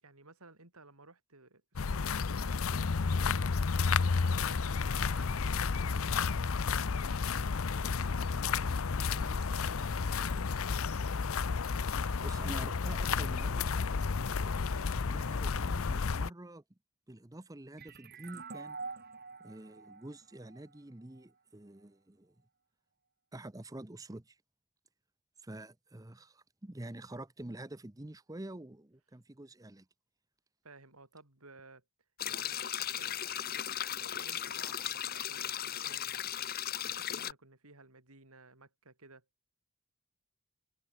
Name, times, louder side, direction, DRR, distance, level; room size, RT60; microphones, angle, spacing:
voice 1, 0.0-3.6 4.0-6.4 6.7-8.6 8.9-10.8 30.6-31.8 32.2-39.2, right 2 dB, 85° right, 5.2 m, -57 dB
sound 1, 1.8-16.3, left 5 dB, 70° left, 0.6 m, -31 dB
voice 2, 12.2-13.7 14.3-16.6 17.1-18.8 19.4-22.3 23.3-24.4 25.4-29.9, right 1 dB, 15° right, 0.7 m, -47 dB
sound 2, 17.8-21.2, right 4 dB, 45° right, 4.1 m, -46 dB
sound 3, 32.2-37.3, left 10 dB, 45° left, 1.3 m, -37 dB
head